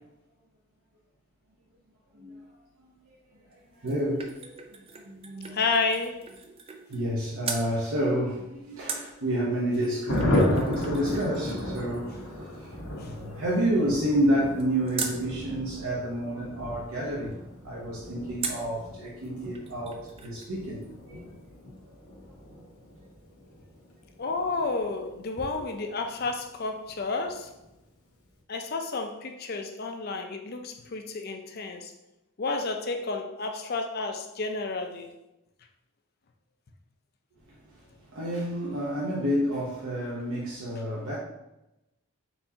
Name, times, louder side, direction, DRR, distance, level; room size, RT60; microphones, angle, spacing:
voice 1, 2.1-2.4 2.8-2.9 3.5-5.6 6.9-17.3 17.6-20.8 21.1-21.2 37.5-41.2, right 1 dB, 75° right, 0.8 m, -30 dB
sound 1, 3.5-7.1 7.4-7.7 8.9-15.2 18.4-18.8 19.2-19.3 19.5-20.5 20.8-20.9, right 5 dB, 25° right, 0.4 m, -40 dB
voice 2, 5.5-6.2 13.0-13.1 24.2-27.5 28.5-31.9 32.4-35.1, left 3 dB, 45° left, 0.5 m, -31 dB
Thunder, 10.1-26.2 26.5-26.6 26.9-27.0 27.3-27.7, left 1 dB, 90° left, 1.2 m, -34 dB
4.4 x 4.1 x 2.8 m
head